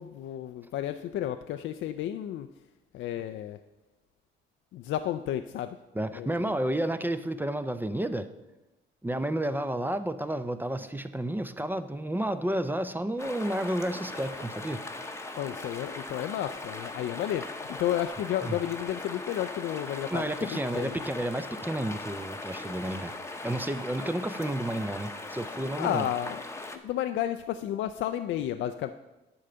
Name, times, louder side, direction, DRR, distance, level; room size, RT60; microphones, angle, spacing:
voice 1, 0.0-2.5 2.9-3.6 4.7-5.8 6.1-6.5 15.3-21.0 25.8-26.4 26.8-28.9, left 11 dB, 75° left, 8 dB, 0.4 m, -32 dB
voice 2, 5.9-8.3 9.0-14.8 18.4-18.6 20.1-26.0, right 1 dB, 10° right, 11 dB, 0.5 m, -31 dB
sound 1, 13.2-26.8, left 2 dB, 15° left, 0.8 m, -39 dB
9.8 x 3.9 x 6.7 m, 1.0 s
cardioid pair, 90°, 20 cm